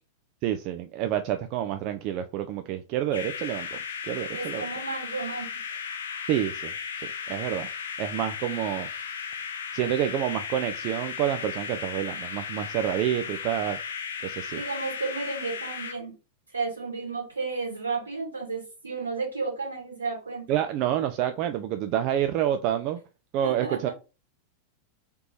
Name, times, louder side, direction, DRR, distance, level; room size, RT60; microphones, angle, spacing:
voice 1, 0.4-3.8 4.0-4.6 6.3-6.7 7.3-7.7 8.0-8.9 9.7-13.8 14.2-14.6 20.5-23.0 23.3-23.9, right 11 dB, 40° right, 0.3 m, -28 dB
sound 1, 3.1-15.9, left 7 dB, 65° left, 0.5 m, -36 dB
voice 2, 4.3-5.5 13.0-13.3 14.5-16.1 16.5-20.5 23.4-23.9, right 4 dB, 75° right, 1.7 m, -33 dB
3.4 x 2.9 x 2.8 m
figure-of-eight pair, 90°, 0 cm